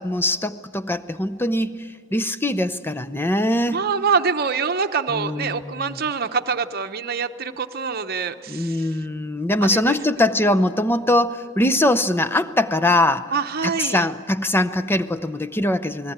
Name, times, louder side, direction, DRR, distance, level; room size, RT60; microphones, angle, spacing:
voice 1, 0.0-3.8 5.1-6.0 8.5-13.3 13.6-16.1, left 1 dB, 10° left, 11 dB, 0.6 m, -22 dB
voice 2, 3.7-9.0 9.6-10.0 13.3-14.0, right 5 dB, 45° right, 7 dB, 0.9 m, -25 dB
29.0 x 19.5 x 8.9 m, 2.3 s
head